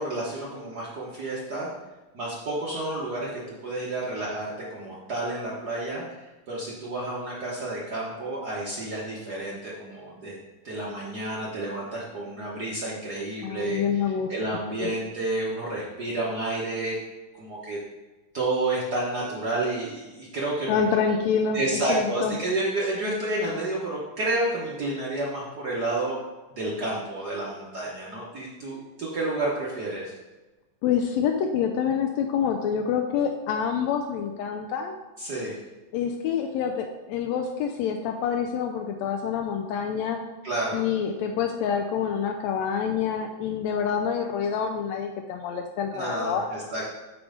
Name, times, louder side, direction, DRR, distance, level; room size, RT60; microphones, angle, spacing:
voice 1, 0.0-1.7 2.1-3.3 3.6-6.0 6.5-10.3 10.6-13.8 14.3-17.0 17.4-17.8 18.3-20.8 21.5-26.2 26.6-30.1 35.2-35.6 40.4-40.8 45.9-46.8, right 2 dB, 75° right, -5 dB, 0.9 m, -30 dB
voice 2, 13.4-14.3 14.8-14.9 20.7-22.4 30.8-34.9 35.9-40.2 40.7-46.5, left 7 dB, 80° left, 3 dB, 1.6 m, -27 dB
8.5 x 3.7 x 5.0 m, 1.2 s
omnidirectional pair, 3.5 m